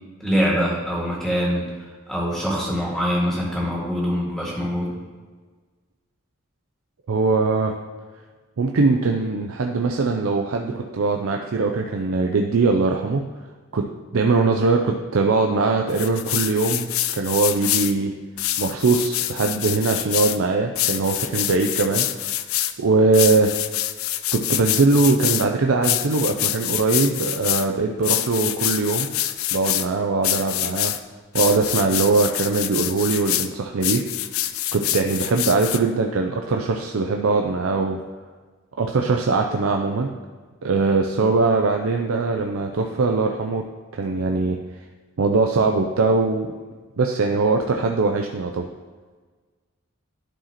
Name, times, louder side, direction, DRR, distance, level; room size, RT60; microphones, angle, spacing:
voice 1, 0.2-1.6 2.1-4.9, equal, ahead, -5 dB, 2.0 m, -23 dB
voice 2, 7.1-7.7 8.6-13.2 13.7-13.8 14.1-18.1 18.6-22.1 22.8-23.5 24.3-29.1 29.5-31.0 31.3-34.0 34.7-38.0 38.8-40.1 40.6-43.6 43.9-44.6 45.2-46.5 47.0-48.7, right 3 dB, 85° right, 3 dB, 0.5 m, -21 dB
sound 1, 15.9-17.9 18.4-20.4 20.8-22.7 23.1-25.5 25.8-27.7 28.0-29.9 30.2-31.0 31.3-33.5 33.8-35.8, left 13 dB, 85° left, 0.4 m, -25 dB
11.5 x 4.8 x 3.0 m, 1.4 s
head